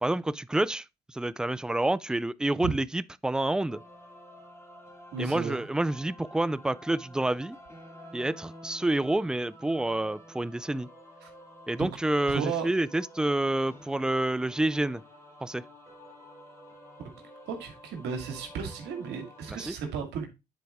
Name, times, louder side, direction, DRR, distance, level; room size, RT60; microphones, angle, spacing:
voice 1, 0.0-3.8 5.2-7.6 8.1-10.9 11.7-15.0 15.4-15.6 19.5-19.7, right 1 dB, 5° right, 0.3 m, -28 dB
sound 1, 3.7-19.7, equal, 15° left, 2.2 m, -50 dB
voice 2, 5.1-5.6 11.2-11.3 11.8-11.9 12.3-12.7 17.5-20.3, right 6 dB, 80° right, 1.9 m, -34 dB
9.4 x 4.5 x 3.5 m
cardioid pair, 110°, 17 cm